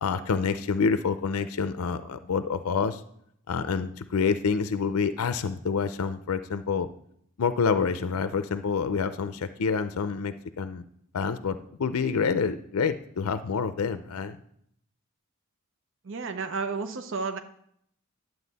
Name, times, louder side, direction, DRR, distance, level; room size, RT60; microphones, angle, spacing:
voice 1, 0.0-3.0 3.5-6.9 7.4-10.8 11.1-14.4, left 5 dB, 75° left, 11 dB, 0.5 m, -27 dB
voice 2, 16.0-17.4, right 4 dB, 60° right, 8 dB, 0.6 m, -32 dB
11.0 x 8.0 x 4.0 m, 0.70 s
head